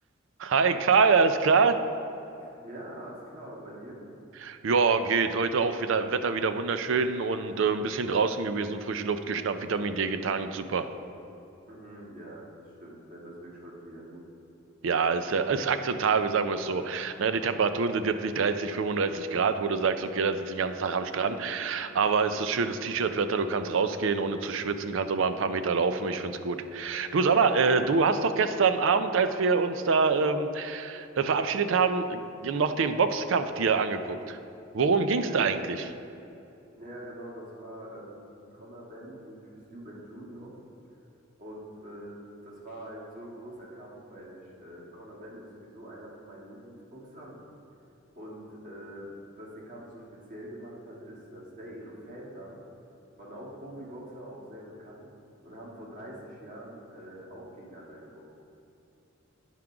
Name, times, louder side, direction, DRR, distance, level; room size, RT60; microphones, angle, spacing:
voice 1, 0.4-1.8 4.4-10.9 14.8-34.4 34.7-35.8, right 5 dB, 65° right, 9 dB, 0.4 m, -26 dB
voice 2, 2.4-4.0 11.7-14.3 21.1-21.5 35.2-35.5 36.8-38.3 38.5-40.5 41.4-42.1 42.4-47.4 48.1-52.6 53.1-55.1 55.4-58.3, right 1 dB, 40° right, -5 dB, 1.6 m, -44 dB
9.1 x 3.7 x 5.8 m, 2.8 s
head